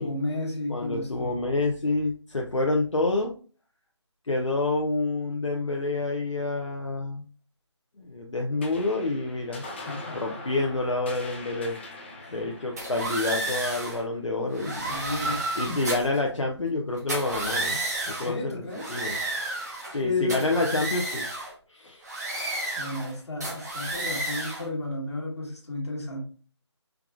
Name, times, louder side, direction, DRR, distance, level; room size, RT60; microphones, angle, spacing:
voice 1, 0.0-1.4 9.8-10.4 12.2-12.5 14.6-15.8 18.1-19.0 19.7-20.5 22.8-26.3, left 2 dB, 65° left, 1.4 m, -33 dB
voice 2, 0.7-3.3 4.3-7.2 8.0-9.6 10.2-11.8 12.3-15.0 15.6-17.8 18.1-18.6 18.9-19.2 19.9-21.3 21.7-22.0, left 2 dB, 90° left, 0.6 m, -28 dB
sound 1, 8.6-15.4, left 2 dB, 25° left, 0.5 m, -43 dB
sound 2, 12.8-14.0 14.5-16.2 17.0-18.3 18.7-20.0 20.3-21.5 22.0-23.1 23.4-24.7, right 2 dB, 35° right, 1.1 m, -31 dB
4.6 x 2.2 x 2.4 m
figure-of-eight pair, 155°, 15 cm